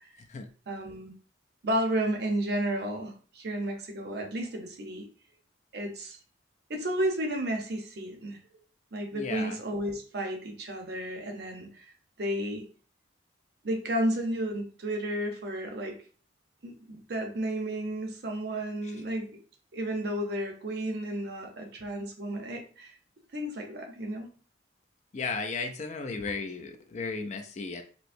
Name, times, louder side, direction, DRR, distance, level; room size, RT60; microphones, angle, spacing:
voice 1, 0.7-1.1 1.6-5.1 5.7-6.2 6.7-8.4 8.9-11.8 12.2-12.7 13.6-16.0 16.6-19.4 19.7-22.9 23.3-24.3 26.1-26.2, right 1 dB, 60° right, 4 dB, 0.7 m, -32 dB
voice 2, 9.1-9.6 18.8-18.9 25.1-27.8, left 4 dB, 40° left, 6 dB, 0.4 m, -35 dB
4.4 x 2.0 x 2.6 m, 0.39 s
head